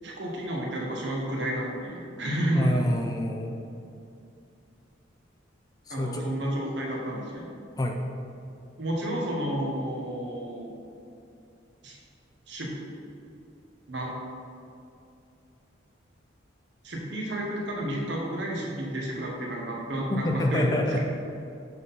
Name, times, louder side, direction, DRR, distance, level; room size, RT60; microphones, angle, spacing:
voice 1, 0.0-2.8 5.9-7.5 8.8-10.7 11.8-12.0 12.5-12.7 13.9-14.1 16.8-20.6, right 1 dB, 65° right, -2 dB, 1.2 m, -31 dB
voice 2, 2.5-3.6 5.9-6.3 7.8-8.0 20.1-21.0, left 1 dB, 20° left, 3 dB, 0.4 m, -26 dB
7.4 x 3.8 x 4.0 m, 2.6 s
head